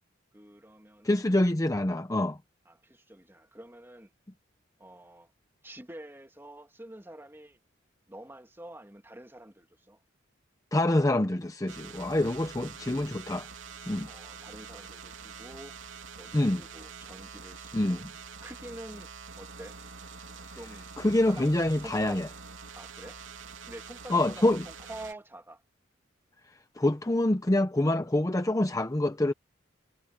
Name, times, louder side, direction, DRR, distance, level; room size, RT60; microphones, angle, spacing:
voice 1, 0.3-1.3 2.7-4.1 4.8-5.3 5.6-7.6 8.1-10.0 14.1-15.8 16.2-18.1 18.4-19.1 19.4-19.8 20.5-22.2 22.7-23.2 23.6-25.6, right 1 dB, 10° right, 2.6 m, -47 dB
voice 2, 1.0-2.4 10.7-13.5 13.9-14.1 16.3-16.6 17.7-18.0 21.0-22.3 24.1-24.6 26.8-29.3, left 1 dB, 20° left, 0.7 m, -26 dB
sound 1, 11.7-25.1, right 5 dB, 85° right, 3.3 m, -46 dB
head